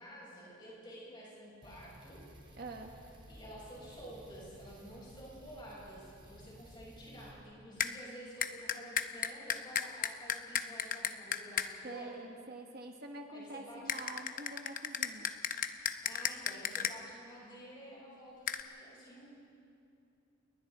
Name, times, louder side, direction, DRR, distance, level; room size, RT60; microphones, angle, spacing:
voice 1, 0.0-2.2 3.3-12.1 13.3-14.0 16.0-19.3, equal, 25° left, -6 dB, 7.0 m, -51 dB
sound 1, 1.6-7.3, right 1 dB, 25° right, 3.2 m, -55 dB
voice 2, 2.6-2.9 11.8-15.3, right 2 dB, 45° right, 3 dB, 1.3 m, -46 dB
sound 2, 7.8-7.9 8.4-11.7 13.9-16.9 18.5-18.6, left 8 dB, 40° left, 0.7 m, -34 dB
29.0 x 21.5 x 4.2 m, 2.6 s
head